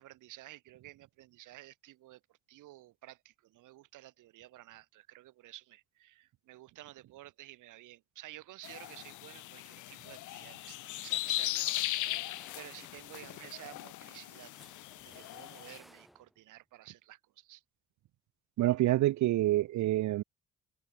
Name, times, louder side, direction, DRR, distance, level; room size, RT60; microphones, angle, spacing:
voice 1, 0.0-14.5 15.0-17.6, right 16 dB, 90° right, 4.6 m, -52 dB
sound 1, 8.6-15.8, left 16 dB, 80° left, 0.8 m, -38 dB
sound 2, 11.9-16.5, equal, ahead, 7.1 m, -61 dB
voice 2, 18.6-20.2, right 15 dB, 70° right, 0.6 m, -27 dB
cardioid pair, 90°, 30 cm